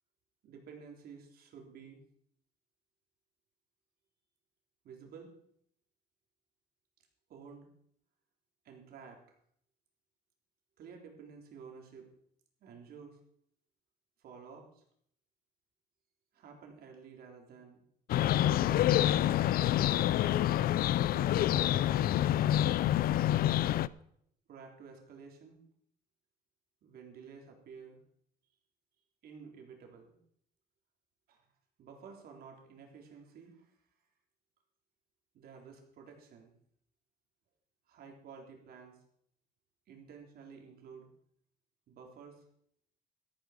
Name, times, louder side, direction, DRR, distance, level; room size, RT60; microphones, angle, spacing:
voice 1, 0.4-2.0 4.8-5.4 7.3-7.7 8.6-9.4 10.8-12.1 12.6-13.2 14.2-14.8 16.3-17.8 18.4-19.8 21.1-22.7 24.5-25.6 26.8-28.0 29.2-30.2 31.3-31.5 31.8-33.8 35.3-36.5 37.9-39.0 39.9-41.1 41.9-42.4, right 6 dB, 65° right, 2 dB, 3.7 m, -52 dB
sound 1, 18.1-23.9, left 13 dB, 60° left, 0.5 m, -27 dB
13.0 x 12.5 x 5.0 m, 0.69 s
cardioid pair, 110°, 17 cm